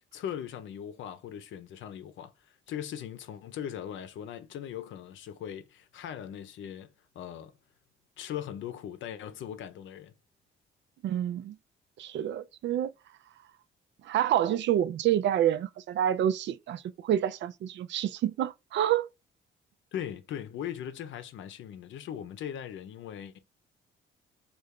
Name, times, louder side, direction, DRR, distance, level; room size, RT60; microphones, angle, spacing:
voice 1, 0.1-7.6 8.2-10.1 19.9-23.4, left 9 dB, 75° left, 0.7 m, -39 dB
voice 2, 11.0-11.6 12.0-12.9 14.0-19.1, right 11 dB, 65° right, 0.4 m, -28 dB
3.2 x 2.5 x 3.6 m
cardioid pair, 90°, 20 cm